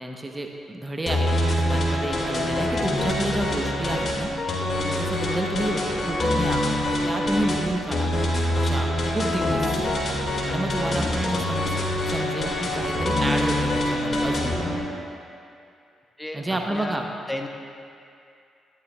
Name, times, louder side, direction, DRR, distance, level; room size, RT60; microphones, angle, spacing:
voice 1, 0.0-4.3 4.9-8.1 8.6-9.8 10.5-14.6 16.3-17.1, right 1 dB, 20° right, 2 dB, 0.9 m, -30 dB
sound 1, 1.1-14.8, left 1 dB, 50° left, 2.0 m, -25 dB
voice 2, 16.2-17.0 17.3-17.5, left 1 dB, 15° left, 3 dB, 1.0 m, -34 dB
13.5 x 9.9 x 2.3 m, 2.5 s
hypercardioid pair, 45°, 0 cm